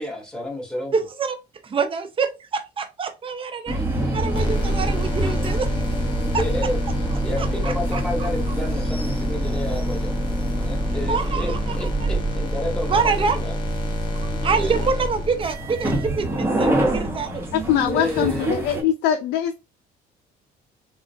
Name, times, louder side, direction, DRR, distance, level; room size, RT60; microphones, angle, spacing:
voice 1, 0.0-0.9 3.6-4.3 5.2-5.3 6.4-6.8 7.2-10.1 10.6-13.5 14.6-14.8 17.8-18.5, left 1 dB, 5° left, 1.6 m, -31 dB
voice 2, 0.9-1.4 1.6-3.8 4.1-5.7 6.3-6.4 7.4-8.0 11.1-12.1 12.9-13.4 14.4-17.4, right 5 dB, 30° right, 0.6 m, -26 dB
sound 1, 3.7-18.8, right 1 dB, 15° right, 1.0 m, -27 dB
sound 2, 4.2-15.8, equal, 25° left, 0.9 m, -27 dB
voice 3, 17.5-19.6, left 10 dB, 85° left, 0.4 m, -22 dB
3.8 x 2.4 x 2.4 m
cardioid pair, 110°, 17 cm